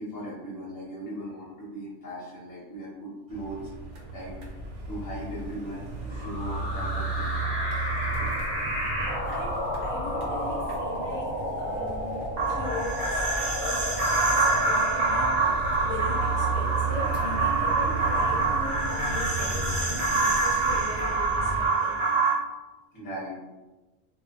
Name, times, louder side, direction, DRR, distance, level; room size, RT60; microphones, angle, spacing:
voice 1, 0.0-3.7 4.1-4.4 4.9-7.3 7.7-8.1 22.9-23.4, right 1 dB, 20° left, -7 dB, 0.7 m, -38 dB
sound 1, 3.3-21.7, right 3 dB, 70° right, 0.5 m, -34 dB
sound 2, 6.1-21.8, equal, 25° right, 1.2 m, -34 dB
voice 2, 9.3-13.3 13.6-15.4 15.8-22.0, left 2 dB, 70° left, -3 dB, 0.9 m, -39 dB
sound 3, 12.4-22.3, right 3 dB, 90° right, 1.0 m, -26 dB
2.4 x 2.1 x 2.5 m, 1.1 s
omnidirectional pair, 1.4 m